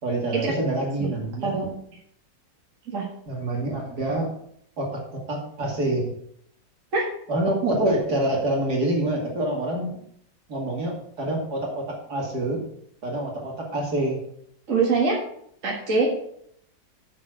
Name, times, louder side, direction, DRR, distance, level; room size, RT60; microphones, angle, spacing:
voice 1, 0.0-1.6 3.3-4.3 4.8-6.1 7.3-10.0 10.5-12.6 13.0-14.2, right 1 dB, 60° right, -1 dB, 2.9 m, -26 dB
voice 2, 14.7-15.2 15.6-16.1, right 4 dB, 45° right, -3 dB, 2.0 m, -23 dB
7.4 x 6.5 x 6.3 m, 0.69 s
omnidirectional pair, 2.0 m